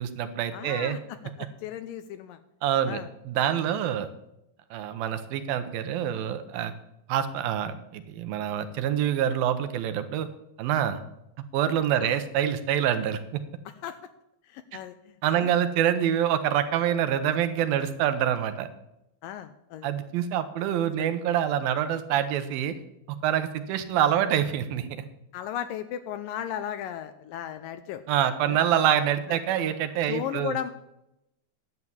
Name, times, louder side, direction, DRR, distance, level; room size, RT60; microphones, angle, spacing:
voice 1, 0.0-1.0 2.6-3.0 3.3-4.1 4.7-6.7 7.1-10.3 10.6-11.0 11.5-13.4 15.2-18.7 19.8-22.7 23.1-24.9 28.1-30.6, right 10 dB, 80° right, 10 dB, 2.5 m, -26 dB
voice 2, 0.5-2.4 2.9-3.1 12.0-12.2 13.8-14.0 14.4-15.5 19.2-19.9 21.0-21.2 25.3-28.0 28.5-28.6 29.3-29.4 30.1-30.7, left 10 dB, 80° left, 11 dB, 2.1 m, -36 dB
11.0 x 8.0 x 7.1 m, 0.85 s
omnidirectional pair, 4.4 m